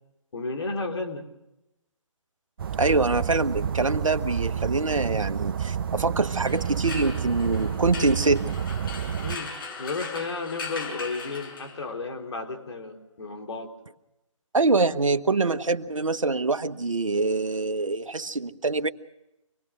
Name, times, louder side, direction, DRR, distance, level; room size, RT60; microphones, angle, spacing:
voice 1, 0.3-1.2 9.2-9.5 9.8-13.7, left 3 dB, 55° left, 3 dB, 4.1 m, -33 dB
sound 1, 2.6-9.4, right 8 dB, 45° right, 1.1 m, -29 dB
voice 2, 2.8-8.6 14.5-18.9, right 3 dB, 75° right, 10 dB, 1.2 m, -24 dB
sound 2, 6.3-12.0, left 4 dB, 40° left, 7.2 m, -39 dB
26.5 x 20.0 x 6.2 m, 0.90 s
figure-of-eight pair, 150°, 17 cm